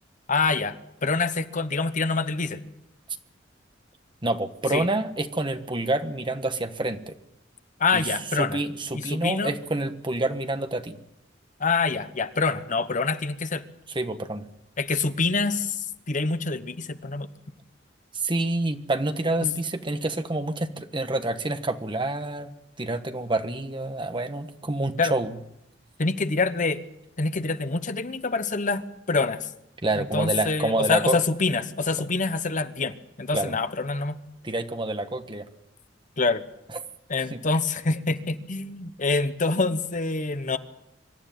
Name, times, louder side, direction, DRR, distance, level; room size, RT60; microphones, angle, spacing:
voice 1, 0.3-2.6 4.7-4.9 7.8-8.6 8.9-9.5 11.6-13.6 14.8-17.3 25.0-25.1 26.0-26.8 27.2-29.5 29.9-34.2 36.2-36.4 37.1-40.6, left 4 dB, 45° left, 11 dB, 1.1 m, -26 dB
voice 2, 4.2-7.1 7.9-8.1 8.3-11.0 13.9-14.5 18.1-25.4 29.8-31.2 33.3-33.5 34.4-35.4 37.3-37.4, right 2 dB, 25° right, 8 dB, 1.3 m, -28 dB
25.0 x 12.5 x 9.2 m, 0.85 s
head